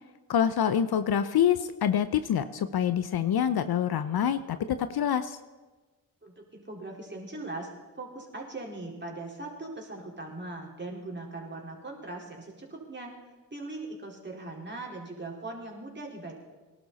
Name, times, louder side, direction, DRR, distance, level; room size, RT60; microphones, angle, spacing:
voice 1, 0.3-5.4, left 9 dB, 55° left, 12 dB, 0.8 m, -26 dB
voice 2, 6.2-7.7 8.0-13.2 13.5-16.3, right 2 dB, 25° right, -1 dB, 4.4 m, -40 dB
19.0 x 12.0 x 4.2 m, 1.3 s
supercardioid pair, 50°, 44 cm